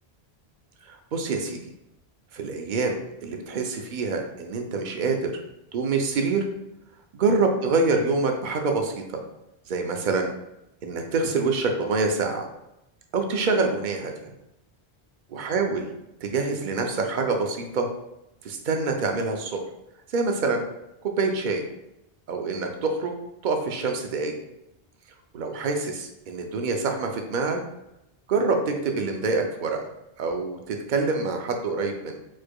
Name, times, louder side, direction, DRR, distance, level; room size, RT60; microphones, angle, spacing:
voice 1, 0.9-1.6 2.3-5.4 5.7-6.5 7.2-9.2 9.7-10.3 10.8-12.5 13.1-14.1 15.3-15.9 16.2-17.9 18.4-19.6 20.1-20.6 21.0-21.6 22.3-23.1 23.4-24.4 25.3-27.6 28.3-29.9 30.2-32.2, right 3 dB, 55° right, 3 dB, 0.7 m, -26 dB
4.7 x 4.4 x 2.3 m, 0.88 s
omnidirectional pair, 1.1 m